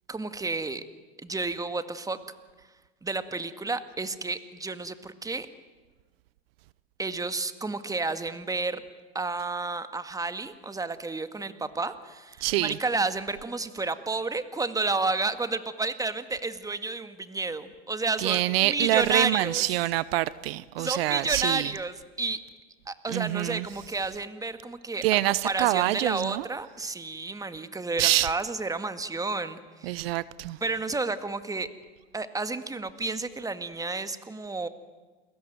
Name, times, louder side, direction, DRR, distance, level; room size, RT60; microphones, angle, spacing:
voice 1, 0.1-0.8 1.2-2.2 3.0-5.5 7.0-8.8 9.1-19.8 20.8-22.4 22.9-30.0 30.6-31.7 32.1-34.7, right 3 dB, 10° right, 1.9 m, -31 dB
voice 2, 12.4-12.8 18.2-21.7 23.1-23.6 25.0-26.5 28.0-28.3 29.8-30.6, right 17 dB, 70° right, 0.8 m, -26 dB
29.5 x 21.0 x 9.3 m
hypercardioid pair, 95°, 31 cm